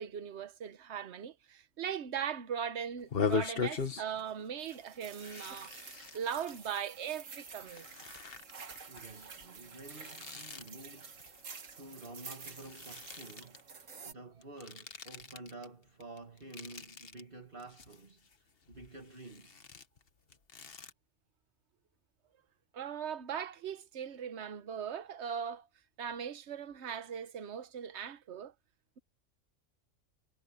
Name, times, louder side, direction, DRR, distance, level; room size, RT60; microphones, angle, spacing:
voice 1, 0.0-5.7 6.1-7.9 22.7-25.7 26.0-28.5, right 8 dB, 60° right, 1.2 m, -39 dB
sound 1, 3.0-4.3 4.6-4.8 5.2-6.7 7.3-12.1 12.3-13.6 14.4-15.7 16.0-17.2 17.6-18.3 18.7-20.9, left 5 dB, 50° left, 1.4 m, -40 dB
sound 2, 4.6-14.1, right 5 dB, 75° right, 2.0 m, -50 dB
voice 2, 8.9-19.7, right 2 dB, 40° right, 2.3 m, -51 dB
omnidirectional pair, 1.3 m